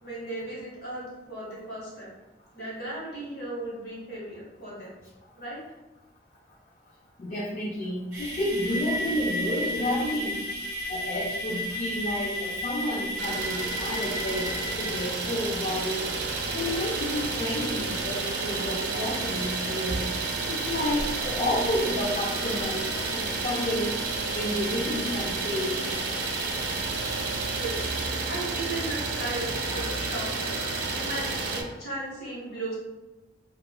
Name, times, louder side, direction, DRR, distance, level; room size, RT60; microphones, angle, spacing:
voice 1, 0.0-2.1 2.5-4.9 5.4-5.6 27.5-27.8 28.2-30.6 30.9-32.7, right 1 dB, 55° left, -6 dB, 1.1 m, -36 dB
voice 2, 7.2-10.4 10.9-16.1 16.5-20.0 20.5-22.9 23.1-23.9 24.3-25.8, left 1 dB, 35° left, -7 dB, 0.4 m, -30 dB
sound 1, 8.1-28.1, equal, 15° right, 1.5 m, -36 dB
Idling, 13.2-31.6, right 4 dB, 65° right, 0.3 m, -31 dB
2.9 x 2.3 x 2.3 m, 1.1 s
head